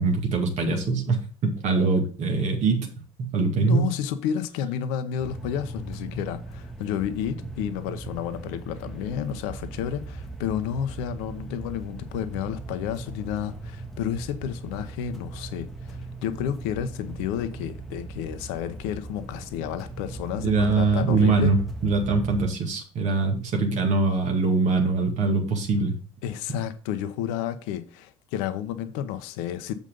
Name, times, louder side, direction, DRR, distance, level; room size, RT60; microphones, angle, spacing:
voice 1, 0.0-2.9 3.2-3.8 20.4-25.9 26.5-26.6, right 3 dB, 45° right, 2.1 m, -23 dB
voice 2, 3.6-21.5 26.2-29.7, left 10 dB, 60° left, 0.8 m, -31 dB
sound 1, 5.2-22.5, right 3 dB, ahead, 1.3 m, -39 dB
7.4 x 5.4 x 5.2 m
figure-of-eight pair, 60°, 16 cm